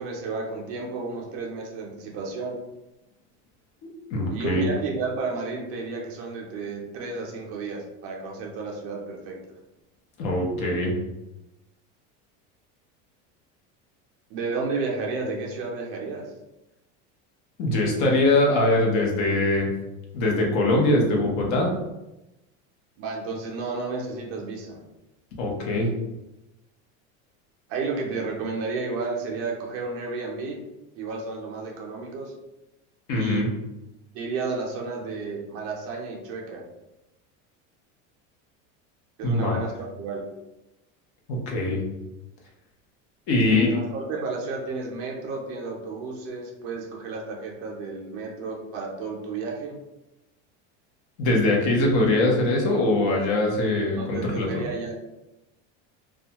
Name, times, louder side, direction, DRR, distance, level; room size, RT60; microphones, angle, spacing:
voice 1, 0.0-2.6 4.3-9.4 14.3-16.3 23.0-24.8 27.7-30.6 31.0-32.3 33.1-33.5 34.1-36.6 39.2-40.2 43.5-49.8 54.0-54.9, right 4 dB, 40° right, -1 dB, 0.5 m, -32 dB
voice 2, 4.1-4.7 10.2-10.9 17.6-19.7 20.1-21.7 25.4-25.9 33.1-33.5 39.2-39.6 41.3-41.8 43.3-43.8 51.2-54.7, left 2 dB, 55° left, -1 dB, 0.8 m, -22 dB
2.3 x 2.2 x 2.8 m, 0.96 s
cardioid pair, 160°, 36 cm